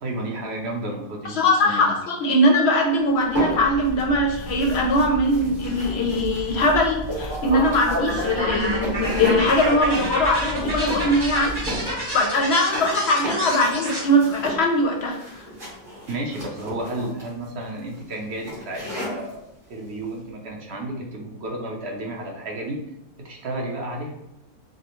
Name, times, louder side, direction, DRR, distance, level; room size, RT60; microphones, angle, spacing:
voice 1, 0.0-1.4 1.6-1.9 16.1-19.4 19.7-22.8 23.2-24.1, right 1 dB, 55° right, 0 dB, 0.9 m, -32 dB
voice 2, 1.4-11.7 12.1-15.4, left 1 dB, 60° left, 0 dB, 0.7 m, -21 dB
sound 1, 3.0-12.5, equal, 70° right, 1.7 m, -35 dB
sound 2, 3.2-4.0 4.3-19.3, equal, 40° right, 1.8 m, -35 dB
sound 3, 7.1-14.0, right 1 dB, 20° right, 1.0 m, -29 dB
4.9 x 2.1 x 3.0 m, 0.85 s
omnidirectional pair, 1.4 m